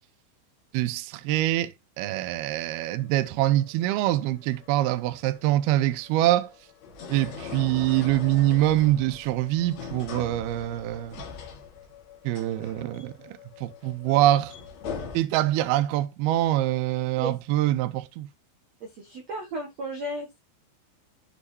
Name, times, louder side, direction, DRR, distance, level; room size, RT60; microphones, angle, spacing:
voice 1, 0.7-1.7 2.0-6.5 7.1-11.2 12.2-14.5 15.1-18.3, right 14 dB, 90° right, 2.2 m, -24 dB
sound 1, 2.6-15.2, left 5 dB, 55° left, 2.0 m, -42 dB
voice 2, 18.8-20.4, right 1 dB, 65° right, 1.7 m, -34 dB
13.5 x 4.9 x 2.8 m
omnidirectional pair, 5.6 m